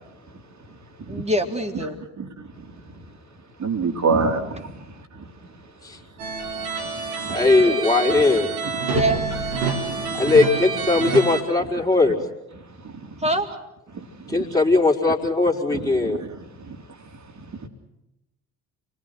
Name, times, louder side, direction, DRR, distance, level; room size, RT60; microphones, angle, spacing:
voice 1, 1.1-2.0 7.4-7.8 8.9-9.2 13.2-13.5, right 1 dB, 15° right, 4 dB, 3.6 m, -24 dB
voice 2, 2.2-3.0 3.6-5.3 6.8-7.7 8.1-8.2 8.8-9.0 9.6-10.3 12.5-13.3 13.9-14.6 15.7-17.7, right 4 dB, 35° right, 4 dB, 3.7 m, -30 dB
sound 1, 6.2-11.4, right 4 dB, 75° right, 3.8 m, -27 dB
voice 3, 7.3-8.5 10.1-12.2 14.3-16.2, left 3 dB, 5° left, 0 dB, 4.7 m, -19 dB
29.5 x 22.5 x 6.1 m, 0.93 s
figure-of-eight pair, 50°, 46 cm